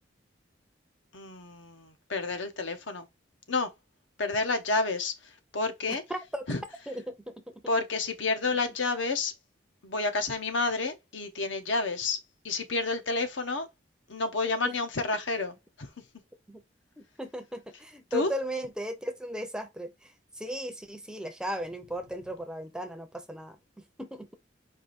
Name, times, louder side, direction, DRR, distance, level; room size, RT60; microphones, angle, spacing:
voice 1, 1.1-3.1 3.5-3.7 4.2-5.1 5.5-6.0 6.5-6.6 7.7-9.3 9.8-12.2 12.4-13.7 14.1-15.5 18.1-18.3, left 3 dB, 85° left, 0.9 m, -29 dB
voice 2, 5.9-6.4 6.9-7.4 14.6-14.7 16.5-16.6 17.0-24.3, equal, 5° right, 0.5 m, -37 dB
4.7 x 2.6 x 4.1 m
head